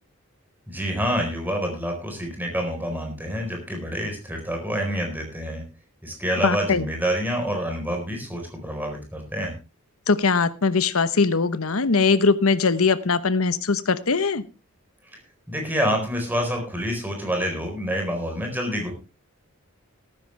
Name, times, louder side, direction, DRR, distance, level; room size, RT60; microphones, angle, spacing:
voice 1, 0.7-5.6 6.0-9.5 15.5-18.9, equal, 10° right, 2 dB, 4.2 m, -27 dB
voice 2, 6.4-6.9 10.1-14.4, left 4 dB, 75° left, 14 dB, 1.0 m, -21 dB
14.0 x 13.0 x 3.4 m, 0.29 s
head